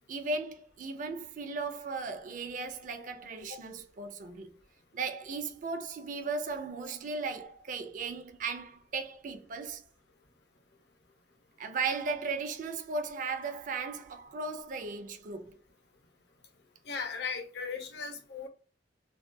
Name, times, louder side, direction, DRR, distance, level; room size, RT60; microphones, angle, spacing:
voice 1, 0.1-4.6 4.9-9.8 11.6-15.6, right 4 dB, 45° right, 0.4 m, -36 dB
voice 2, 16.9-18.5, left 5 dB, 65° left, 0.7 m, -37 dB
2.3 x 2.2 x 2.5 m
head